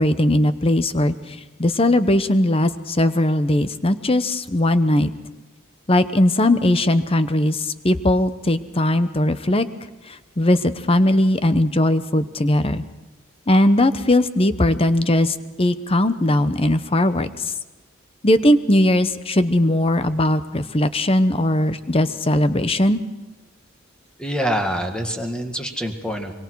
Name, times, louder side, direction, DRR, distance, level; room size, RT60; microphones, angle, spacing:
voice 1, 0.0-5.1 5.9-9.7 10.1-12.8 13.5-17.5 18.2-23.0, left 1 dB, 25° left, 12 dB, 0.9 m, -19 dB
voice 2, 24.2-26.3, equal, 5° left, 4 dB, 1.9 m, -25 dB
25.0 x 23.0 x 4.7 m, 1.2 s
head